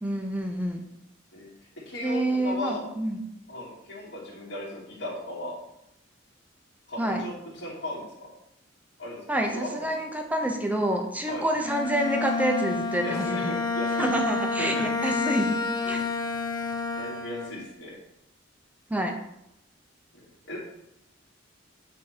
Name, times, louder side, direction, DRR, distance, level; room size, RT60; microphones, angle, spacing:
voice 1, 0.0-0.8 2.0-3.2 7.0-7.2 9.3-13.5 14.0-15.5 15.8-16.0 18.9-19.2, right 1 dB, 10° right, 3 dB, 0.8 m, -28 dB
voice 2, 1.9-2.9 3.5-5.6 6.9-8.3 9.0-9.2 9.5-9.9 11.3-11.4 13.0-14.1 14.6-15.2 17.0-18.0 20.5-20.6, left 1 dB, 65° left, -5 dB, 2.7 m, -36 dB
Bowed string instrument, 11.6-17.7, left 4 dB, 20° left, 0.5 m, -29 dB
8.1 x 3.6 x 4.4 m, 0.81 s
head